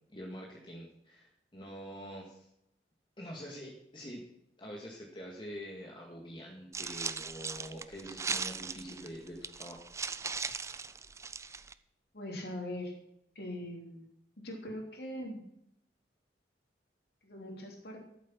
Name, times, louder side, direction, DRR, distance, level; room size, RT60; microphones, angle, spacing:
voice 1, 0.1-2.5 3.2-4.2 4.6-9.8, equal, 30° left, -2 dB, 1.9 m, -45 dB
sound 1, 6.7-11.7, right 5 dB, 15° right, 0.4 m, -38 dB
voice 2, 12.1-12.9 13.3-14.1 14.4-15.4 17.2-18.0, left 1 dB, 65° left, 2 dB, 3.1 m, -41 dB
13.0 x 7.7 x 6.0 m, 0.77 s
head